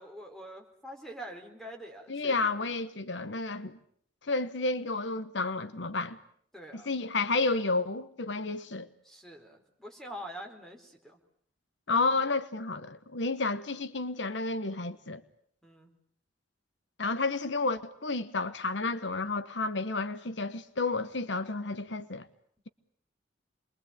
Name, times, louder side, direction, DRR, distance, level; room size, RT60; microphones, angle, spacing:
voice 1, 0.0-2.5 6.5-6.9 9.0-11.2 15.6-15.9, equal, ahead, 4.5 m, -45 dB
voice 2, 2.1-3.8 4.2-6.2 6.7-8.9 11.9-15.2 17.0-22.3, left 3 dB, 70° left, 1.2 m, -31 dB
28.0 x 22.5 x 8.7 m
head